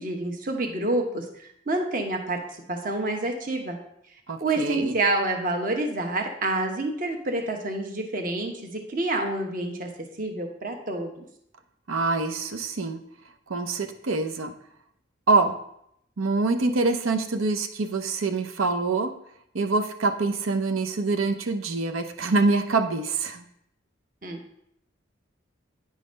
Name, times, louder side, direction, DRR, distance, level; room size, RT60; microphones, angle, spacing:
voice 1, 0.0-3.8 4.4-9.9 10.2-11.2 24.2-24.4, right 2 dB, 40° right, 3 dB, 1.0 m, -28 dB
voice 2, 4.3-5.0 11.9-13.0 13.5-14.5 15.3-15.6 16.2-19.1 19.5-23.4, right 3 dB, 85° right, 7 dB, 0.7 m, -25 dB
9.6 x 4.0 x 5.1 m, 0.73 s
head